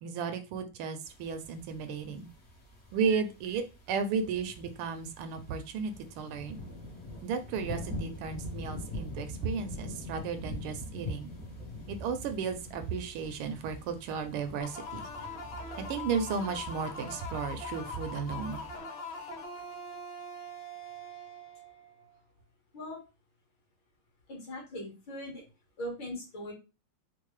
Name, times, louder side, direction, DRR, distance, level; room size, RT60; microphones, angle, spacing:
voice 1, 0.0-2.3 2.9-6.6 7.2-11.3 11.9-15.1 15.9-18.6, right 6 dB, 80° right, 8 dB, 1.4 m, -34 dB
sound 1, 1.0-18.8, left 1 dB, 45° left, 0.9 m, -44 dB
sound 2, 14.6-22.2, left 2 dB, 90° left, 1.9 m, -42 dB
voice 2, 24.3-25.4 25.8-26.5, equal, 60° left, -2 dB, 2.1 m, -40 dB
4.5 x 2.0 x 3.1 m, 0.29 s
omnidirectional pair, 2.4 m